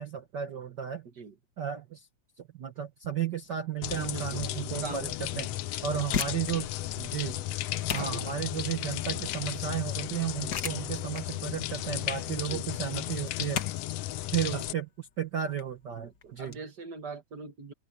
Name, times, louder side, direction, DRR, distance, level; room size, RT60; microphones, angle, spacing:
voice 1, 0.0-1.1 1.6-2.1 2.5-5.5 5.8-6.7 7.0-7.4 7.9-13.6 14.3-14.9 15.2-16.5, right 9 dB, 65° right, 1.0 m, -33 dB
sound 1, 3.8-14.7, left 14 dB, 80° left, 1.3 m, -34 dB
voice 2, 4.1-5.1 5.3-5.4 5.9-6.0 8.0-8.3 10.4-10.7 12.5-12.6 14.5-14.6 16.0-17.7, right 4 dB, 45° right, 1.5 m, -42 dB
sound 2, 5.8-16.6, left 8 dB, 55° left, 1.1 m, -39 dB
open air
omnidirectional pair, 3.6 m